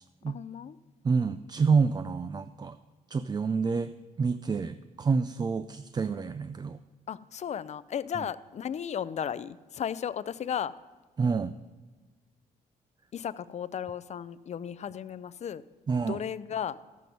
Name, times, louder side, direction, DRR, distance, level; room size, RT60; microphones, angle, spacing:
voice 1, 0.3-0.8 7.1-10.7 13.1-15.6 16.0-16.8, left 8 dB, 45° left, 16 dB, 0.5 m, -35 dB
voice 2, 1.0-2.8 3.1-3.9 4.2-6.8 11.2-11.5 15.9-16.2, right 5 dB, 25° right, 12 dB, 0.4 m, -28 dB
13.0 x 7.6 x 5.3 m, 1.3 s
cardioid pair, 85°, 16 cm